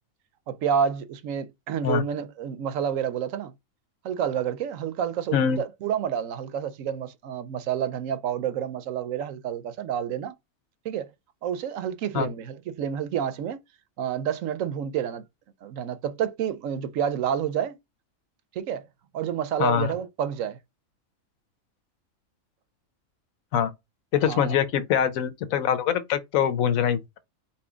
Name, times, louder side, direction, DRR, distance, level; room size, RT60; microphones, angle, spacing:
voice 1, 0.5-3.5 4.0-10.3 10.8-11.1 11.4-13.6 14.0-15.2 15.6-17.8 18.6-18.9 19.1-20.6 24.2-24.6, right 8 dB, 75° right, 1.0 m, -29 dB
voice 2, 19.6-19.9 23.5-23.7 24.1-27.2, left 8 dB, 80° left, 1.1 m, -24 dB
4.4 x 3.0 x 3.5 m
omnidirectional pair, 1.4 m